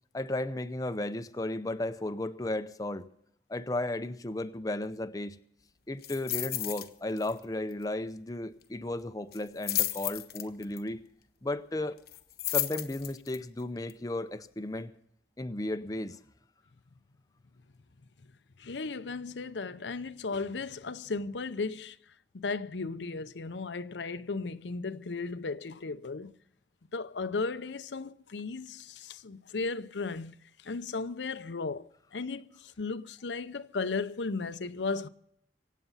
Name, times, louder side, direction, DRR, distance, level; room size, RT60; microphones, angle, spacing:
voice 1, 0.1-3.1 3.5-5.4 5.9-11.0 11.4-11.9 12.5-14.9 15.4-16.2, left 1 dB, 20° left, 0.6 m, -34 dB
sound 1, 6.0-6.9 7.2-7.4 7.7-7.8 9.3-10.8 12.1-13.4 13.9-14.0, left 14 dB, 60° left, 1.0 m, -32 dB
voice 2, 18.6-22.0 22.3-26.3 26.9-35.1, left 4 dB, 90° left, 0.7 m, -35 dB
25.0 x 8.4 x 5.6 m
head